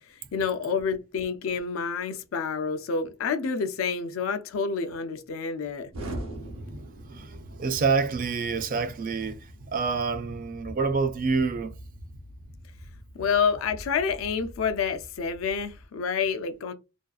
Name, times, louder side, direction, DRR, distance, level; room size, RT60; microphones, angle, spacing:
voice 1, 0.3-5.9 13.2-16.7, left 5 dB, 75° left, 0.4 m, -28 dB
Explosion, 5.9-15.9, right 1 dB, 85° right, 0.7 m, -43 dB
voice 2, 6.7-11.7, right 4 dB, 40° right, 0.4 m, -28 dB
2.6 x 2.3 x 2.3 m
head